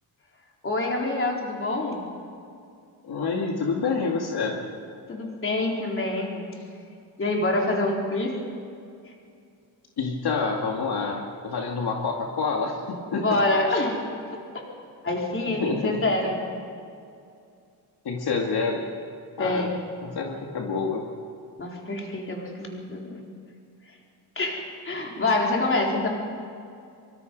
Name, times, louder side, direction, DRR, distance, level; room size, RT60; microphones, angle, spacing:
voice 1, 0.6-2.0 5.1-6.5 7.2-8.3 13.1-14.0 14.3-14.4 15.0-16.3 19.4-19.8 21.6-23.2 24.4-26.1, left 2 dB, 30° left, -1 dB, 4.0 m, -26 dB
voice 2, 3.0-4.6 10.0-13.4 13.7-13.8 15.5-16.0 18.0-18.8 19.4-19.7 20.0-21.0, left 4 dB, 65° left, 0 dB, 2.4 m, -28 dB
24.5 x 24.0 x 5.4 m, 2.4 s
wide cardioid pair, 155°, 42 cm